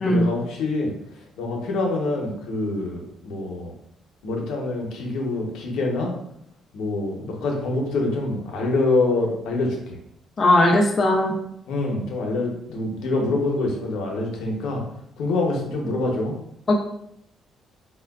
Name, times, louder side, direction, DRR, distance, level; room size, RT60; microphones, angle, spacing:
voice 1, 0.0-0.9 1.4-3.7 4.2-6.1 6.7-10.0 11.7-14.8 15.2-16.4, left 2 dB, 85° left, 0 dB, 0.7 m, -25 dB
voice 2, 10.4-11.3 16.7-16.8, left 1 dB, 25° left, -1 dB, 0.4 m, -18 dB
4.2 x 2.2 x 2.3 m, 0.74 s
cardioid pair, 180°, 0 cm